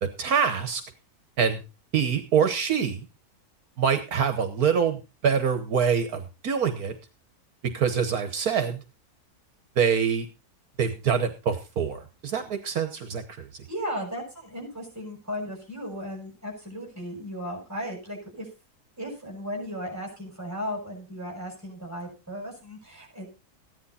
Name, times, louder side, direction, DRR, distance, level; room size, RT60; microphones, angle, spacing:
voice 1, 0.0-0.8 1.4-1.6 1.9-3.1 3.8-6.9 7.7-8.8 9.8-10.2 10.8-13.5, right 7 dB, 70° right, 8 dB, 1.6 m, -25 dB
voice 2, 13.7-18.5 19.0-23.4, equal, 10° right, 0 dB, 6.7 m, -36 dB
15.0 x 10.5 x 4.2 m, 0.31 s
omnidirectional pair, 1.6 m